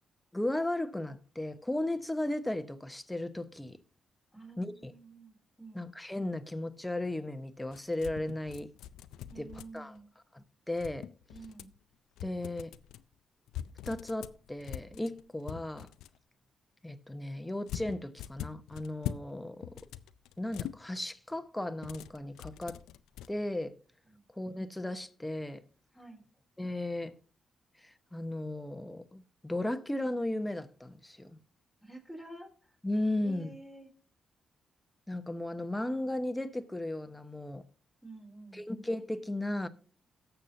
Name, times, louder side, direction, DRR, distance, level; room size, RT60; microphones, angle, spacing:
voice 1, 0.3-3.8 4.6-4.9 5.7-8.7 9.4-9.9 10.3-11.1 12.2-12.7 13.9-15.9 16.8-19.7 20.4-22.8 23.3-23.7 24.4-25.6 26.6-27.1 28.1-31.4 32.8-33.5 35.1-37.6 38.5-39.7, left 1 dB, 10° left, 1.1 m, -35 dB
voice 2, 4.3-5.9 9.3-10.0 11.3-11.7 24.1-24.2 25.9-26.2 31.8-32.8 33.2-33.9 38.0-38.6, right 2 dB, 10° right, 3.5 m, -49 dB
sound 1, 7.7-10.0 10.7-11.8 12.2-13.0 13.5-16.2 17.7-19.3 19.6-20.8 21.8-23.3, left 11 dB, 90° left, 0.4 m, -43 dB
18.0 x 6.9 x 2.7 m
supercardioid pair, 60°, 0 cm